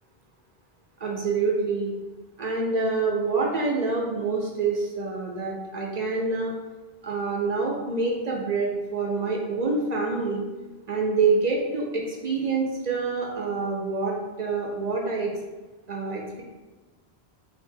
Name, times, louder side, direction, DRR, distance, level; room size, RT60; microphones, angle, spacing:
voice 1, 1.0-1.9 2.4-6.5 7.0-10.4 10.9-15.3 15.9-16.4, right 4 dB, 50° right, -2 dB, 0.6 m, -26 dB
2.9 x 2.6 x 4.4 m, 1.2 s
omnidirectional pair, 1.1 m